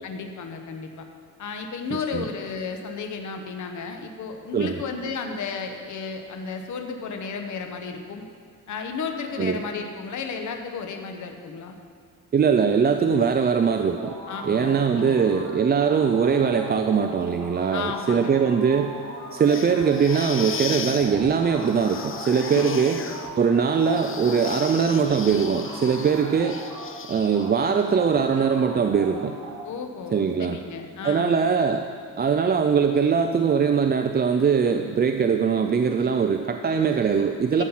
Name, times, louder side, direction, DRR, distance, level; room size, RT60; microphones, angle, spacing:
voice 1, 0.0-1.1 1.4-8.2 8.7-11.8 14.3-15.3 17.7-18.3 22.5-23.1 29.6-31.4 37.6-37.7, left 5 dB, 60° left, 4 dB, 1.1 m, -33 dB
voice 2, 12.3-14.1 14.4-18.9 19.3-23.0 23.4-26.6 27.1-29.4 30.1-30.6 31.0-31.8 32.2-37.6, right 6 dB, 30° right, 6 dB, 0.4 m, -21 dB
sound 1, 13.9-15.5 15.8-24.7 25.2-26.9 27.3-29.6, right 3 dB, 70° right, 3.0 m, -39 dB
sound 2, 19.4-27.7, left 6 dB, 40° left, 0.6 m, -37 dB
13.0 x 7.5 x 5.6 m, 2.3 s
cardioid pair, 130°, 33 cm